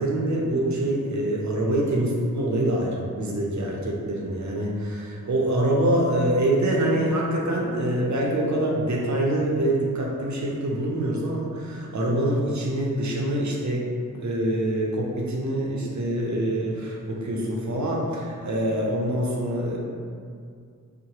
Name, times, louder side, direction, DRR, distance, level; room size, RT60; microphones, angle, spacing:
voice 1, 0.0-13.9 14.2-19.8, right 1 dB, 55° right, -3 dB, 0.6 m, -25 dB
2.8 x 2.0 x 2.9 m, 2.3 s
cardioid pair, 45°, 33 cm